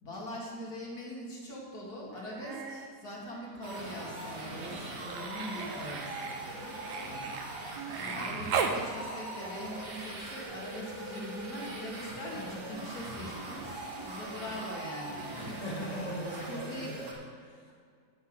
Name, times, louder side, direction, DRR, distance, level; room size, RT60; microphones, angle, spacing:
voice 1, 0.0-6.4 7.0-7.4 7.9-13.8 14.0-15.4 16.5-16.9, equal, 70° left, -5 dB, 2.6 m, -42 dB
Human voice, 2.1-2.9 3.2-8.8 10.4-10.5, right 5 dB, 60° right, 1.1 m, -38 dB
sound 1, 3.6-17.1, right 2 dB, 85° right, 2.4 m, -41 dB
voice 2, 7.9-8.5 15.3-17.7, equal, 25° left, -4 dB, 2.0 m, -41 dB
9.4 x 5.9 x 8.0 m, 2.1 s
omnidirectional pair, 1.8 m